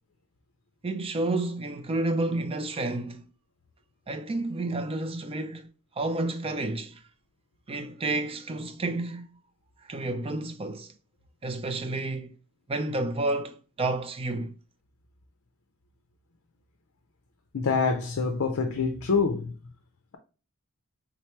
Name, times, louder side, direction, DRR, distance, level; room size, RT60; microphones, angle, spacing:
voice 1, 0.8-3.2 4.1-5.7 6.0-7.0 7.7-9.2 9.9-10.9 11.4-12.4 12.7-14.5, right 2 dB, 25° right, 0.5 m, -30 dB
voice 2, 17.5-19.5, left 4 dB, 60° left, 0.6 m, -26 dB
4.0 x 3.1 x 4.4 m
head